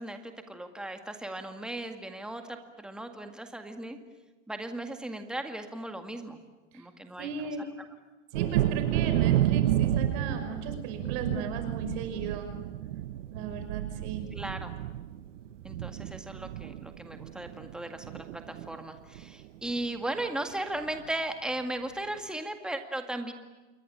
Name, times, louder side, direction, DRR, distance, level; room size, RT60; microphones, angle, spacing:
voice 1, 0.0-4.0 4.5-6.4 6.7-7.3 7.6-7.7 14.3-14.7 15.6-23.3, right 1 dB, ahead, 6 dB, 2.0 m, -37 dB
voice 2, 7.2-7.7 8.3-12.5 13.3-14.2, right 5 dB, 45° right, 7 dB, 5.7 m, -36 dB
Thunder, 8.3-17.8 18.0-18.7 19.2-19.3 19.6-19.9, right 12 dB, 80° right, 1.4 m, -30 dB
28.5 x 22.5 x 8.6 m, 1.2 s
supercardioid pair, 155°, 37 cm